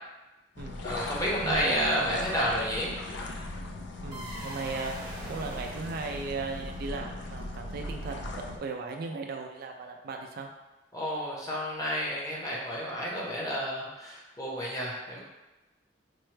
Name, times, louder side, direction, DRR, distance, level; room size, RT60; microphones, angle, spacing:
sound 1, 0.6-8.6, left 2 dB, 65° left, 0.4 m, -39 dB
voice 1, 0.8-2.9 10.9-15.2, equal, 20° left, -4 dB, 0.7 m, -30 dB
voice 2, 1.4-2.2 4.0-4.9 5.3-10.5, right 4 dB, 55° right, 3 dB, 0.3 m, -37 dB
sound 2, 4.1-7.3, right 1 dB, 25° right, 0.8 m, -44 dB
4.3 x 2.2 x 3.2 m, 1.0 s
head